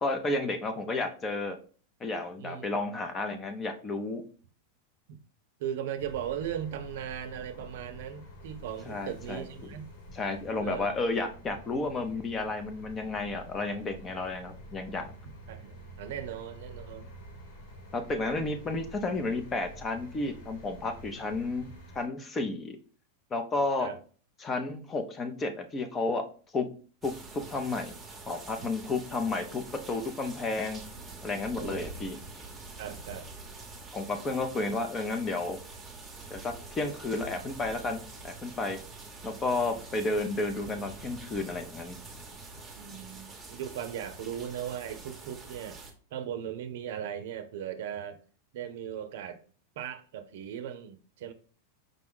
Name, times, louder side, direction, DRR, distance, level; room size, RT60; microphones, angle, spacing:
voice 1, 0.0-1.6 2.0-4.2 8.9-9.7 10.1-15.1 17.9-21.7 21.9-22.8 23.3-23.9 24.4-26.3 26.5-26.7 27.0-28.0 28.3-30.8 31.2-32.2 33.9-35.6 36.3-38.8 39.2-42.0, left 3 dB, 20° left, 0.6 m, -32 dB
voice 2, 5.6-9.9 10.6-11.0 15.5-17.1 23.8-24.0 28.6-28.7 31.6-31.9 32.8-33.3 42.8-45.9 46.1-48.2 48.5-49.4 49.8-51.3, right 9 dB, 70° right, 0.6 m, -38 dB
sound 1, 6.0-22.1, equal, 65° left, 1.5 m, -48 dB
sound 2, 27.0-45.9, right 3 dB, 10° right, 0.9 m, -46 dB
5.1 x 2.3 x 3.7 m
supercardioid pair, 135°, 0 cm